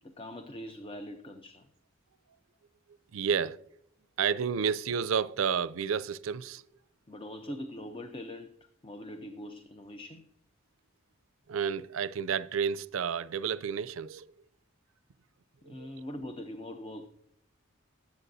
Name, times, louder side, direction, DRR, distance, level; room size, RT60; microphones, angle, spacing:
voice 1, 0.0-1.7 7.1-8.5 8.8-10.3 15.6-17.1, left 1 dB, 25° left, 0.6 m, -42 dB
voice 2, 3.1-3.6 4.2-6.6 11.5-14.3 15.7-15.9, right 7 dB, 75° right, 0.4 m, -30 dB
21.0 x 8.2 x 2.7 m
head